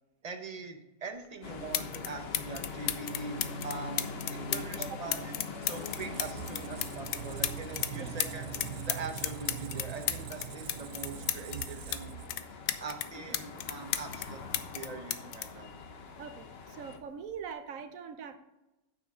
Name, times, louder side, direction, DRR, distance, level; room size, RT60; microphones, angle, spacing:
voice 1, 0.2-3.4 3.6-5.3 5.6-8.6 8.8-12.2 12.8-14.4 14.7-15.7, right 4 dB, 35° right, 5 dB, 0.6 m, -42 dB
sound 1, 1.2-1.3 1.7-2.1 2.3-7.9 8.2-12.0 12.3-14.3 14.5-16.4 17.3-17.5, left 12 dB, 80° left, 1.2 m, -34 dB
sound 2, 1.4-17.0, left 3 dB, 45° left, 0.9 m, -43 dB
Squeak, 5.1-12.8, right 10 dB, 85° right, 1.3 m, -43 dB
voice 2, 16.2-18.4, right 6 dB, 60° right, 9 dB, 1.0 m, -42 dB
9.1 x 7.0 x 3.6 m, 1.0 s
omnidirectional pair, 1.8 m